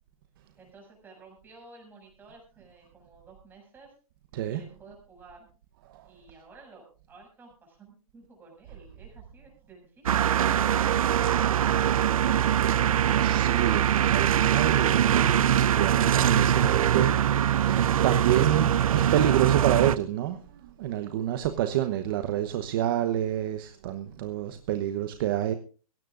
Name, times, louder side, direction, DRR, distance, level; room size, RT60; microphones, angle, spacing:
voice 1, 0.6-4.0 4.5-5.5 6.0-12.3, right 3 dB, 10° right, 6.7 m, -53 dB
sound 1, 10.1-20.0, right 10 dB, 70° right, 0.7 m, -23 dB
voice 2, 13.2-25.5, right 11 dB, 35° right, 1.0 m, -28 dB
21.0 x 17.0 x 2.5 m
hypercardioid pair, 160°, 19 cm